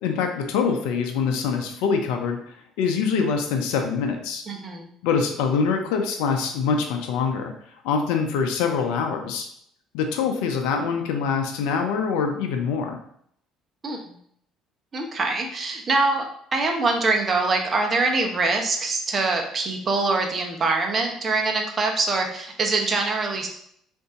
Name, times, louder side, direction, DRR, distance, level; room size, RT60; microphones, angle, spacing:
voice 1, 0.0-2.4 2.8-4.4 5.0-7.5 7.8-9.5 9.9-13.0, left 5 dB, 75° left, 4 dB, 0.6 m, -24 dB
voice 2, 4.5-4.9 13.8-14.1 14.9-23.5, right 3 dB, 40° right, 3 dB, 0.8 m, -24 dB
3.9 x 2.7 x 3.6 m, 0.67 s
hypercardioid pair, 65°, 0 cm